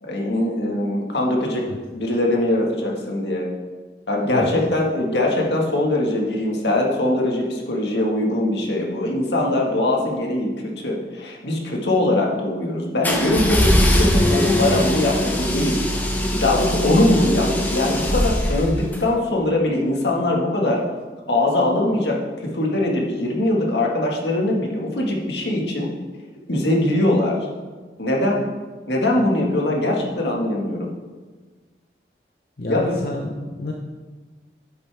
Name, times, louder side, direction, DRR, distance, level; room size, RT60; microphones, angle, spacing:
voice 1, 0.0-1.7 1.9-3.5 4.1-20.8 21.3-25.9 26.5-27.4 28.0-28.4 28.9-30.9 32.7-33.0, left 1 dB, 80° left, -1 dB, 1.8 m, -21 dB
sound 1, 13.0-19.0, equal, 10° left, 0.8 m, -21 dB
voice 2, 32.6-33.7, left 1 dB, 55° left, 1 dB, 0.7 m, -28 dB
9.7 x 8.1 x 3.5 m, 1.3 s
head